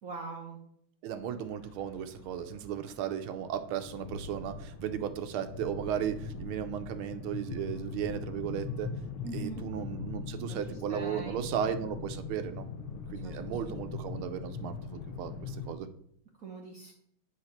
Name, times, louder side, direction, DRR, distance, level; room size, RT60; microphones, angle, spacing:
voice 1, 0.0-0.6 9.2-9.6 10.5-11.8 13.2-13.4 13.7-13.8 16.4-16.9, right 3 dB, 55° right, 0 dB, 1.1 m, -43 dB
voice 2, 1.0-8.9 9.3-12.7 13.1-15.9, right 9 dB, 85° right, 9 dB, 1.5 m, -35 dB
sound 1, 1.1-15.7, left 4 dB, 80° left, 1.6 m, -41 dB
9.1 x 3.2 x 5.7 m, 0.67 s
omnidirectional pair, 2.3 m